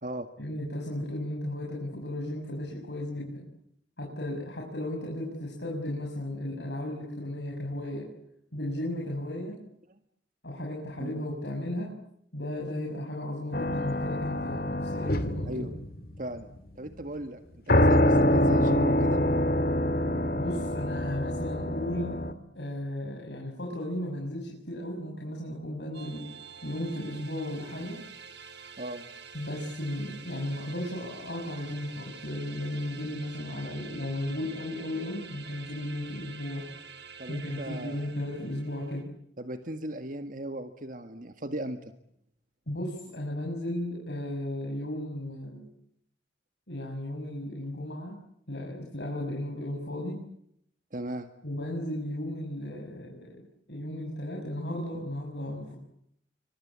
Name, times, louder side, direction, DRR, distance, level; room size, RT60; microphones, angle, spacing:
voice 1, 0.4-3.5 4.0-8.1 8.5-9.6 10.4-11.9 12.3-15.7 20.3-22.2 22.5-26.2 26.6-28.0 29.3-36.7 37.3-39.1 42.7-45.7 46.7-48.2 48.5-50.2 51.4-53.4 53.7-55.7, left 1 dB, 75° left, -2 dB, 6.7 m, -35 dB
sound 1, 13.5-16.2 17.7-22.3, left 1 dB, 55° left, 2.3 m, -25 dB
voice 2, 16.2-16.5 16.8-19.2 28.8-29.1 37.2-38.1 39.4-41.8 50.9-51.3, right 1 dB, 50° right, 7 dB, 1.8 m, -37 dB
sound 2, 25.9-39.0, right 6 dB, 80° right, 3.9 m, -47 dB
28.5 x 25.0 x 8.4 m, 0.73 s
head